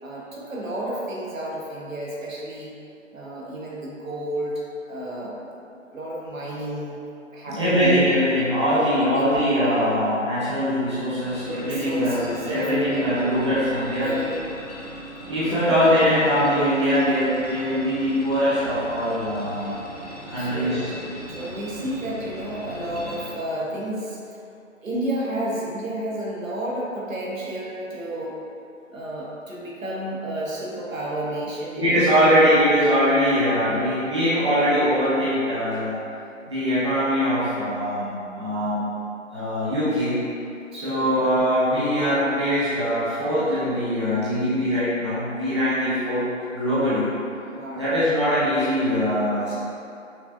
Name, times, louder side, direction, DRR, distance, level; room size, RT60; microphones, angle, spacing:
voice 1, 0.0-2.7 3.1-7.0 7.3-8.0 8.7-9.3 9.6-9.8 11.5-13.3 14.0-14.4 15.5-16.2 20.4-20.9 21.3-24.4 24.8-28.4 28.9-32.4 33.5-33.9 40.7-41.1 47.5-48.0 49.4-49.5, right 1 dB, 75° right, -5 dB, 1.1 m, -32 dB
voice 2, 7.5-14.1 15.2-19.7 20.3-20.9 31.7-36.0 36.5-38.8 39.3-40.2 40.7-46.2 46.5-47.1 47.8-49.5, equal, 20° right, -13 dB, 0.6 m, -22 dB
sound 1, 11.2-23.3, equal, 35° left, 0.4 m, -39 dB
5.7 x 2.5 x 2.2 m, 2.6 s
figure-of-eight pair, 155°, 40 cm